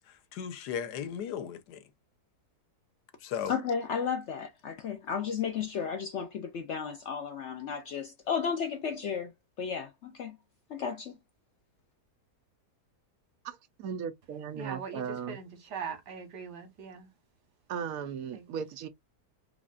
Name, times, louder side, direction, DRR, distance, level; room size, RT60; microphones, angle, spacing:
voice 1, 0.0-1.8 3.2-3.5, left 8 dB, 90° left, 1.3 m, -36 dB
voice 2, 3.5-9.3 9.6-10.4 10.7-11.2, left 6 dB, 70° left, 0.7 m, -33 dB
voice 3, 13.4-15.4 17.7-18.9, right 7 dB, 70° right, 0.9 m, -37 dB
voice 4, 14.6-17.1 18.3-18.6, right 6 dB, 90° right, 1.9 m, -41 dB
5.0 x 2.4 x 2.4 m
omnidirectional pair, 1.7 m